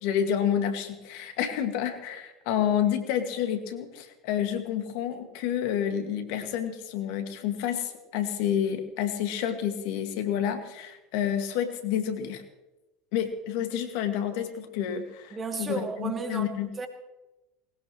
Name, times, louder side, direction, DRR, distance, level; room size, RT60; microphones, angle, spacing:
voice 1, 0.0-12.4 13.1-16.7, left 9 dB, 65° left, 2.0 m, -29 dB
voice 2, 15.3-16.9, right 4 dB, 25° right, 2.5 m, -34 dB
20.5 x 19.0 x 3.1 m
hypercardioid pair, 80°, 0 cm